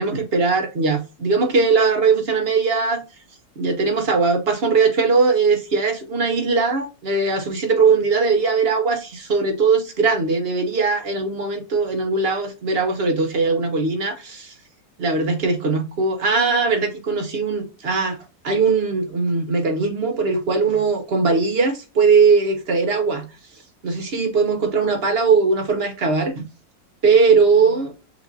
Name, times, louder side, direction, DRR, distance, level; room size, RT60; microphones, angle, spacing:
voice 1, 0.0-3.0 3.6-14.5 15.0-18.2 18.4-23.3 23.8-26.5 27.0-27.9, right 4 dB, 50° right, 0.7 m, -20 dB
6.0 x 2.5 x 2.6 m
omnidirectional pair, 1.9 m